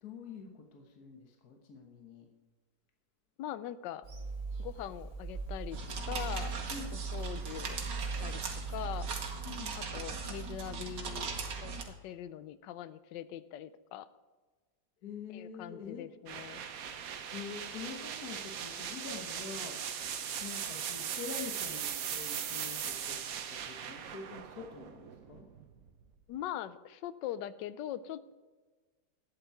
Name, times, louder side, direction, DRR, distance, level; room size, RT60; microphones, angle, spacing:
voice 1, 0.0-2.3 6.7-6.9 9.4-9.8 15.0-16.1 17.3-19.8 20.4-23.2 23.5-25.5, left 5 dB, 60° left, 3 dB, 1.6 m, -45 dB
voice 2, 3.4-4.0 4.6-5.8 6.0-6.6 6.9-8.4 8.7-9.1 9.7-11.3 11.6-14.1 15.3-16.7 26.3-28.3, left 11 dB, 85° left, 14 dB, 1.3 m, -42 dB
Bird vocalization bird call bird song / Telephone, 4.0-9.1, right 3 dB, 40° right, 1.6 m, -42 dB
sound 1, 5.7-11.8, right 4 dB, 85° right, 2.0 m, -39 dB
sound 2, 16.3-26.0, right 8 dB, 60° right, 1.2 m, -39 dB
12.0 x 9.2 x 4.6 m, 1.4 s
omnidirectional pair, 1.9 m